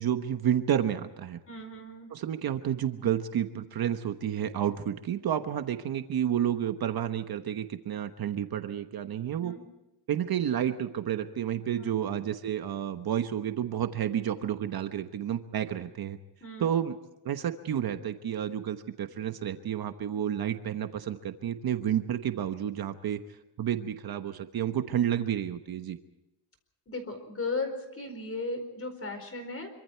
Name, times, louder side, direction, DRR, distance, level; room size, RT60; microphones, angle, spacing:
voice 1, 0.0-1.4 2.1-9.5 10.1-16.2 16.6-17.0 17.2-23.2 23.6-26.0, right 10 dB, 50° right, 8 dB, 1.2 m, -30 dB
voice 2, 1.5-2.1 9.4-9.6 11.8-12.0 16.4-16.7 26.9-29.7, left 3 dB, 30° left, 8 dB, 4.6 m, -36 dB
26.0 x 24.5 x 4.6 m, 0.95 s
cardioid pair, 145°, 49 cm